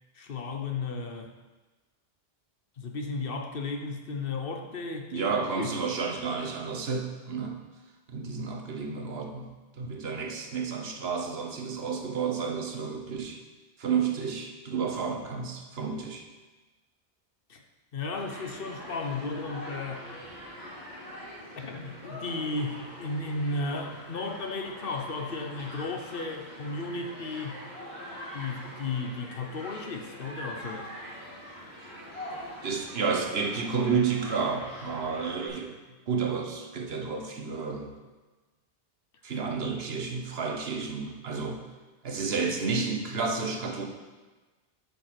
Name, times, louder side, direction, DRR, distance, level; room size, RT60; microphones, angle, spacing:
voice 1, 0.1-1.3 2.8-5.7 17.5-17.6 17.9-20.1 21.5-27.6 28.3-30.9, left 3 dB, 60° left, 3 dB, 1.1 m, -34 dB
voice 2, 5.1-7.6 8.1-13.4 13.8-16.3 32.6-35.8 36.1-37.9 39.2-41.6 42.0-43.8, right 5 dB, 70° right, 3 dB, 1.2 m, -31 dB
Human group actions, 18.1-35.5, equal, 80° left, 3.3 m, -43 dB
8.3 x 5.4 x 5.9 m, 1.3 s
omnidirectional pair, 1.1 m